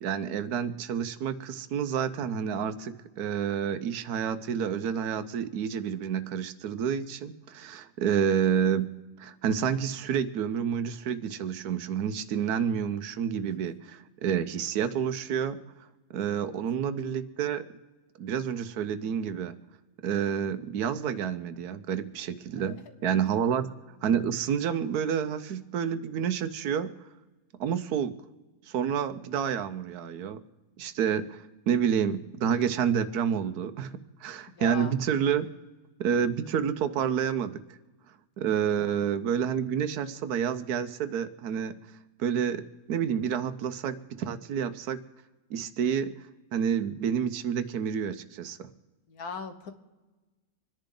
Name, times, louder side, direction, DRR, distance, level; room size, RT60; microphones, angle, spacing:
voice 1, 0.0-8.9 9.2-15.6 16.1-17.7 18.2-19.6 20.0-23.7 24.0-26.9 27.6-28.1 28.7-30.4 30.8-35.5 36.0-37.6 38.4-41.8 42.2-45.0 45.5-46.1 46.5-48.7, right 8 dB, 80° right, 11 dB, 1.3 m, -29 dB
voice 2, 34.5-35.0 38.8-39.0 49.1-49.7, left 5 dB, 80° left, 8 dB, 1.7 m, -39 dB
26.5 x 10.5 x 3.8 m, 1.2 s
omnidirectional pair, 1.6 m